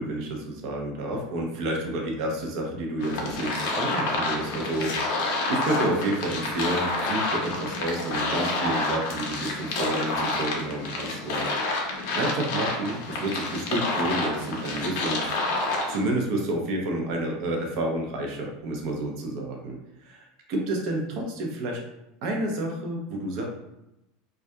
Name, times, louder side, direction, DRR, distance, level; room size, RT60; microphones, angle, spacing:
voice 1, 0.0-5.2 5.5-11.5 12.1-15.3 15.9-21.8 22.2-23.4, right 1 dB, 55° right, 1 dB, 0.5 m, -30 dB
sound 1, 3.0-16.0, left 2 dB, 70° left, 0.6 m, -29 dB
2.2 x 2.2 x 2.6 m, 0.89 s
supercardioid pair, 145°, 0 cm